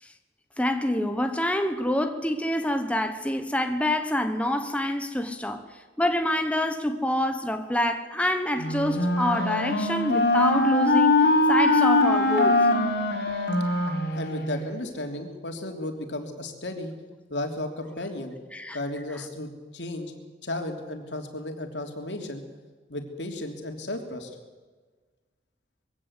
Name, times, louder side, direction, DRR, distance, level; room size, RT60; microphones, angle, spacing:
voice 1, 0.6-5.6 6.0-12.6 18.5-18.8, left 1 dB, 5° left, 1.1 m, -26 dB
Wind instrument woodwind instrument, 8.6-14.7, left 2 dB, 65° left, 4.2 m, -22 dB
voice 2, 14.1-16.9 17.3-18.3 18.7-20.1 20.4-22.4 22.9-24.3, left 1 dB, 85° left, 3.2 m, -34 dB
22.0 x 16.0 x 8.2 m
head